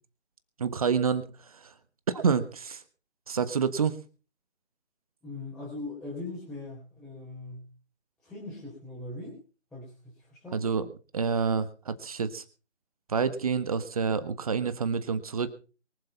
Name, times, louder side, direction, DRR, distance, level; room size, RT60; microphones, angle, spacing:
voice 1, 0.6-1.7 2.1-2.8 3.3-4.0 10.5-10.8 11.1-12.4 13.1-15.5, right 6 dB, 30° right, 13 dB, 1.4 m, -28 dB
voice 2, 5.2-7.7 8.2-9.4 9.7-10.7, left 2 dB, ahead, -7 dB, 3.7 m, -41 dB
23.5 x 7.8 x 5.7 m, 0.36 s
figure-of-eight pair, 155°, 34 cm